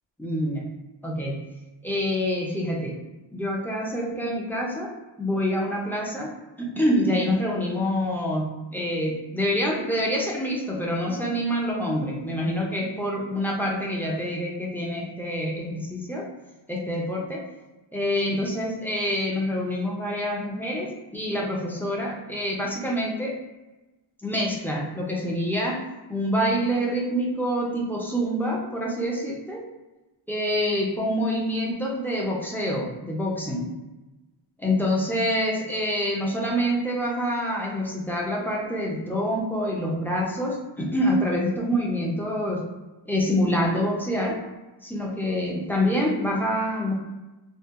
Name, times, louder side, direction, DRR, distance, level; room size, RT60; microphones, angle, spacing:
voice 1, 0.2-0.7 1.0-1.4 1.8-3.0 3.3-16.3 16.7-17.5 17.9-23.4 24.2-29.7 30.3-33.7 34.6-42.7 43.1-44.4 44.8-46.9, equal, 5° left, -3 dB, 0.3 m, -26 dB
2.7 x 2.2 x 2.3 m, 1.1 s
wide cardioid pair, 130°, 47 cm